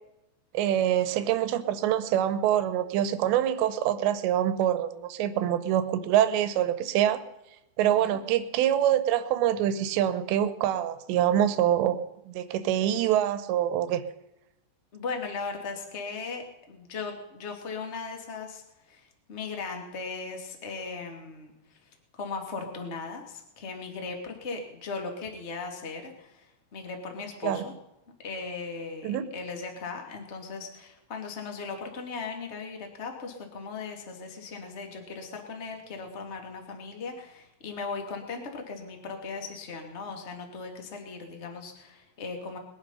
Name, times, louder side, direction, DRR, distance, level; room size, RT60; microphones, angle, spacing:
voice 1, 0.5-7.2 7.8-12.0 12.3-14.0 27.4-27.6 29.0-29.2, right 11 dB, 80° right, 12 dB, 3.1 m, -25 dB
voice 2, 7.8-8.2 14.9-21.8 22.1-27.7 28.2-42.6, left 4 dB, 25° left, 3 dB, 1.5 m, -38 dB
21.5 x 11.0 x 5.7 m, 0.91 s
omnidirectional pair, 5.1 m